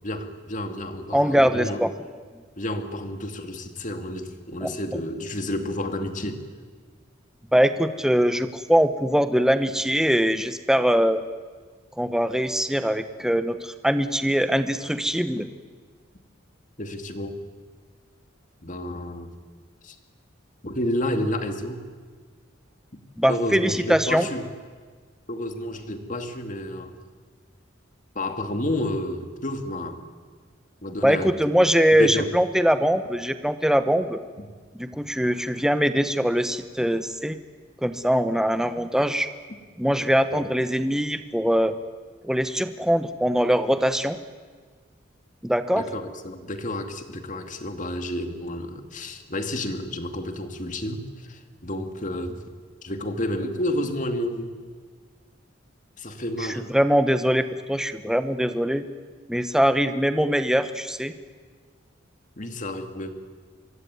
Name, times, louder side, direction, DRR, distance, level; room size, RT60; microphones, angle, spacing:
voice 1, 0.0-1.8 2.6-6.4 15.4-15.5 16.8-17.4 18.6-19.3 19.8-20.0 20.6-21.9 23.3-24.5 25.3-26.9 28.1-30.0 30.8-31.4 31.9-32.3 34.4-34.5 40.3-40.4 45.8-52.4 52.8-54.6 56.0-56.6 62.4-63.1, left 1 dB, 40° left, 6 dB, 2.4 m, -30 dB
voice 2, 1.1-1.9 4.6-4.7 7.5-11.2 12.0-15.5 23.2-24.2 31.0-34.2 34.8-37.4 37.8-39.3 39.8-41.7 42.2-44.2 45.4-45.8 56.7-58.8 59.3-61.1, equal, 5° right, 9 dB, 1.0 m, -22 dB
25.5 x 22.0 x 9.5 m, 1.5 s
head